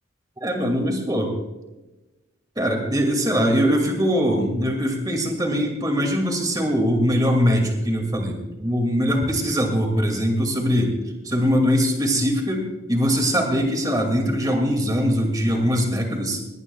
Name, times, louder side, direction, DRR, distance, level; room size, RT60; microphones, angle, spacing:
voice 1, 0.4-1.3 2.6-10.9 11.2-16.4, equal, 20° right, 3 dB, 2.4 m, -22 dB
19.5 x 18.0 x 2.4 m, 1.1 s
head